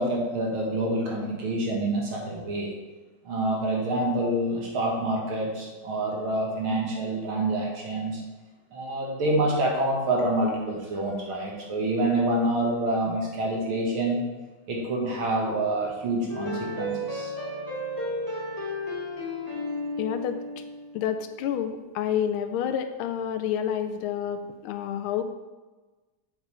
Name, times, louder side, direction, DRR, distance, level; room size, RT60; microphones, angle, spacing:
voice 1, 0.0-2.7 3.2-8.2 8.7-14.2 14.7-17.3, right 1 dB, 80° right, -2 dB, 2.4 m, -27 dB
sound 1, 16.3-20.9, left 1 dB, 10° left, 2.1 m, -33 dB
voice 2, 20.0-20.4 20.9-25.2, left 9 dB, 90° left, 8 dB, 1.5 m, -29 dB
8.2 x 7.0 x 3.3 m, 1.2 s
omnidirectional pair, 2.3 m